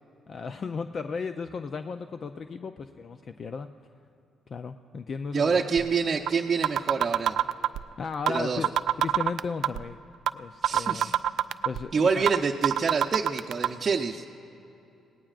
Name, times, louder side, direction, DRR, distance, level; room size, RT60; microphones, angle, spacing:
voice 1, 0.3-3.7 4.5-5.9 8.0-8.7 9.0-10.0 10.3-11.1 11.7-12.3, left 5 dB, 50° left, 8 dB, 0.4 m, -35 dB
voice 2, 5.3-7.4 8.3-8.6 10.6-11.1 11.9-14.2, right 5 dB, 40° right, -1 dB, 0.6 m, -26 dB
sound 1, 5.8-5.9 6.3-6.4 6.6-7.8 8.3-8.4 8.6-9.8 10.3-10.4 10.6-11.8 12.3-12.4 12.6-13.7, right 11 dB, 75° right, 0.3 m, -23 dB
27.0 x 18.5 x 2.5 m, 2.8 s
cardioid pair, 90°, 0 cm